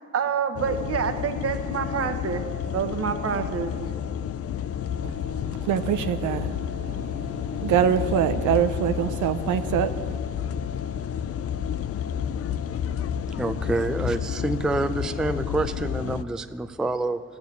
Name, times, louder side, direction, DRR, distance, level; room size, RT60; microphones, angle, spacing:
voice 1, 0.0-2.4 2.7-3.9, right 6 dB, 50° right, 1.2 m, -27 dB
sound 1, 0.6-16.2, left 9 dB, 50° left, 0.5 m, -30 dB
voice 2, 5.0-10.2, right 9 dB, 75° right, 0.6 m, -25 dB
voice 3, 13.4-17.2, right 2 dB, ahead, 0.4 m, -27 dB
12.0 x 7.0 x 9.5 m
cardioid pair, 90°, 30 cm